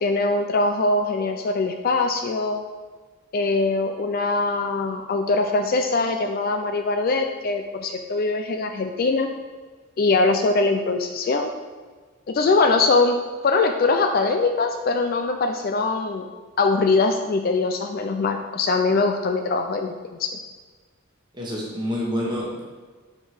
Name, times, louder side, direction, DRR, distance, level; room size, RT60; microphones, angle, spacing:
voice 1, 0.0-2.6 3.3-9.3 10.0-11.5 12.3-13.2 13.4-16.3 16.6-20.4, left 3 dB, 45° left, 5 dB, 0.4 m, -22 dB
voice 2, 21.3-22.6, equal, 20° right, -4 dB, 1.3 m, -27 dB
4.8 x 4.5 x 4.8 m, 1.4 s
head